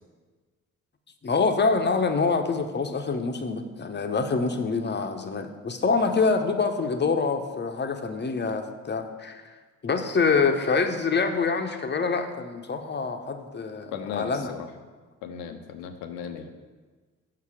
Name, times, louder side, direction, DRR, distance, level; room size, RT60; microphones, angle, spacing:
voice 1, 1.2-9.4 9.8-14.5, left 4 dB, 30° left, 6 dB, 0.8 m, -26 dB
voice 2, 13.9-14.7 15.2-16.5, left 7 dB, 80° left, 6 dB, 0.7 m, -36 dB
5.9 x 5.7 x 4.8 m, 1.3 s
hypercardioid pair, 45°, 38 cm